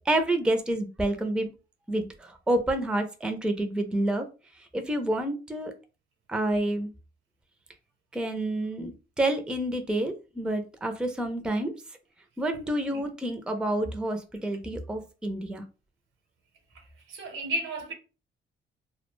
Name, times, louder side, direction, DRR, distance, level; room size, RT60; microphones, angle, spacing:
voice 1, 0.1-1.5 1.9-4.3 4.7-5.7 6.3-6.9 8.1-11.7 12.4-15.6, right 1 dB, 5° right, 0.4 m, -28 dB
voice 2, 16.7-17.9, right 1 dB, 80° right, 0.8 m, -34 dB
2.3 x 2.1 x 3.0 m
cardioid pair, 90°, 20 cm